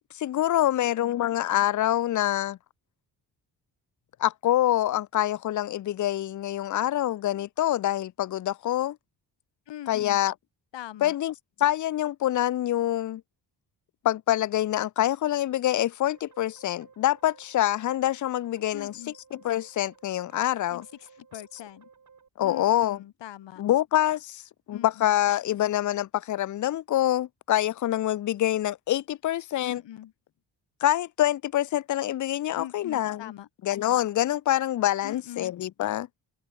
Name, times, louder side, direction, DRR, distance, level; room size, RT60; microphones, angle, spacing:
voice 1, 0.1-2.6 4.2-9.0 9.9-10.3 11.0-11.3 11.6-13.2 14.0-18.9 19.3-20.9 22.4-23.0 23.6-24.4 24.7-29.8 30.8-33.3 33.6-36.1, left 13 dB, 45° left, 0.5 m, -26 dB
voice 2, 0.7-1.2 9.7-10.2 10.7-11.2 18.7-19.1 20.7-20.8 21.2-21.9 22.4-23.6 24.7-25.1 29.6-30.1 32.5-33.5 35.0-35.5, left 12 dB, 85° left, 1.6 m, -42 dB
sound 1, 16.0-22.3, right 6 dB, 45° right, 4.6 m, -56 dB
cardioid pair, 110°, 42 cm